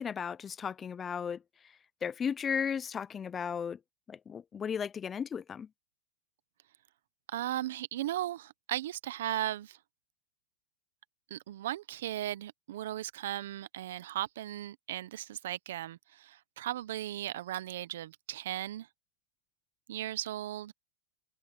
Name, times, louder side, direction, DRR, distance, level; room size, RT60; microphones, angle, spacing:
voice 1, 0.0-1.4 2.0-3.8 4.1-5.7, left 7 dB, 15° left, 0.3 m, -35 dB
voice 2, 7.3-9.8 11.3-18.9 19.9-20.7, right 13 dB, 70° right, 0.6 m, -37 dB
supercardioid pair, 155°, 0 cm